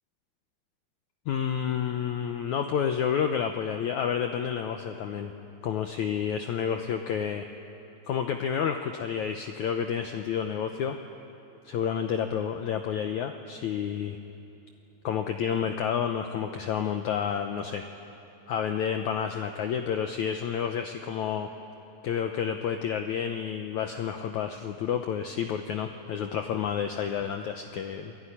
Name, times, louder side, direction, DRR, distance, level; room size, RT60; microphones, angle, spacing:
voice 1, 1.3-5.3 5.6-7.5 8.1-11.0 11.7-14.2 15.0-17.9 18.5-21.5 22.0-28.2, left 8 dB, 75° left, 6 dB, 1.7 m, -30 dB
27.5 x 19.0 x 9.9 m, 3.0 s
omnidirectional pair, 4.4 m